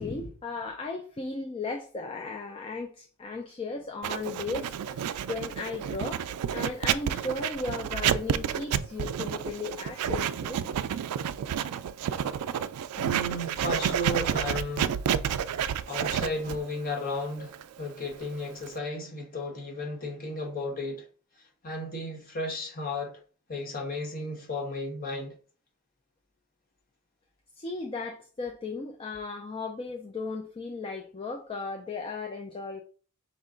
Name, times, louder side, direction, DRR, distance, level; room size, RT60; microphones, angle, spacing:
voice 1, 0.0-5.0 5.3-6.2 6.5-10.6 27.6-32.8, left 3 dB, 25° left, 0.4 m, -36 dB
Writing, 4.0-18.8, right 9 dB, 80° right, 0.3 m, -30 dB
voice 2, 13.0-15.0 15.9-21.0 21.6-23.1 23.5-25.3, left 1 dB, 40° left, 1.2 m, -34 dB
5.4 x 2.2 x 3.7 m
head